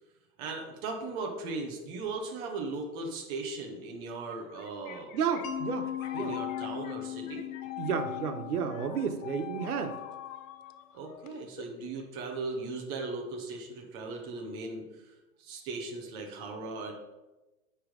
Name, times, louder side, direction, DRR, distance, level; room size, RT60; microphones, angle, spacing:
voice 1, 0.4-5.1 6.1-7.5 10.9-16.9, right 3 dB, 10° right, 2 dB, 0.3 m, -38 dB
sound 1, 4.3-11.8, left 15 dB, 65° left, 0.6 m, -44 dB
voice 2, 5.1-6.3 7.8-10.0, right 6 dB, 85° right, 6 dB, 1.1 m, -32 dB
Mallet percussion, 5.4-10.2, left 11 dB, 30° left, 0.8 m, -39 dB
9.5 x 3.3 x 4.9 m, 1.1 s
hypercardioid pair, 140°, 44 cm